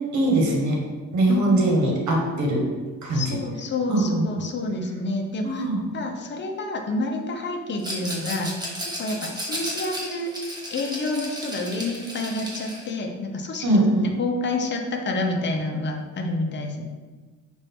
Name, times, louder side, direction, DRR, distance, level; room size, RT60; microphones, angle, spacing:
voice 1, 0.1-0.8 1.1-2.6 3.0-3.4 3.9-4.4 5.4-5.9 13.6-14.1, right 1 dB, 70° right, 0 dB, 1.3 m, -22 dB
voice 2, 3.1-5.6 5.9-8.5 9.0-10.3 10.7-13.7 14.0-16.8, left 2 dB, 35° left, 3 dB, 0.7 m, -28 dB
Rattle, 7.8-12.9, equal, 15° right, 1.2 m, -34 dB
5.6 x 2.6 x 3.5 m, 1.4 s
cardioid pair, 90°, 30 cm